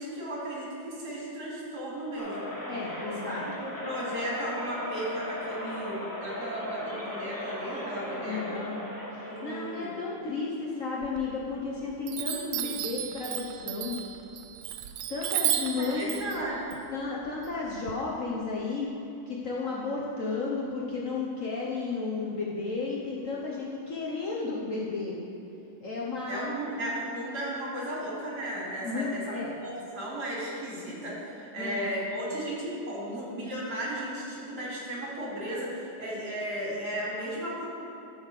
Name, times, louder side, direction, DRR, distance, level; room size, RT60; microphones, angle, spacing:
voice 1, 0.0-2.5 3.2-8.6 9.2-9.9 15.8-16.8 26.3-29.2 29.6-37.8, right 1 dB, 55° right, -6 dB, 3.1 m, -35 dB
sound 1, 2.2-10.1, left 1 dB, 15° left, 0.8 m, -38 dB
voice 2, 2.7-3.4 8.2-8.7 9.1-14.0 15.1-16.1 16.9-18.9 19.3-25.2 25.8-26.5 28.8-29.6 31.6-31.9, left 4 dB, 50° left, -4 dB, 1.2 m, -33 dB
Chime, 11.0-11.7 12.1-17.9, right 12 dB, 80° right, 1.3 m, -33 dB
13.5 x 5.0 x 6.6 m, 2.7 s
omnidirectional pair, 2.2 m